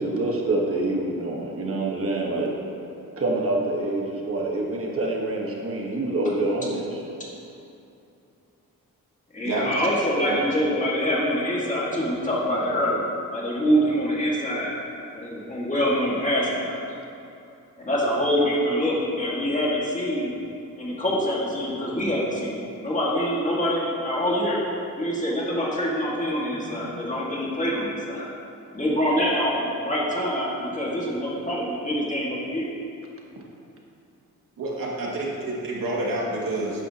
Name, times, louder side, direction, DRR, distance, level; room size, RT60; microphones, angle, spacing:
voice 1, 0.0-2.5 3.2-7.0 26.5-26.9, right 2 dB, 40° right, -1 dB, 1.3 m, -26 dB
voice 2, 9.3-13.1 13.3-14.7 15.1-16.8 17.8-20.3 20.8-24.6 25.0-28.3 28.7-32.7, equal, 20° left, -5 dB, 1.9 m, -25 dB
voice 3, 34.6-36.8, right 2 dB, 85° right, -4 dB, 2.1 m, -28 dB
13.0 x 9.9 x 2.9 m, 2.7 s
wide cardioid pair, 165°, 33 cm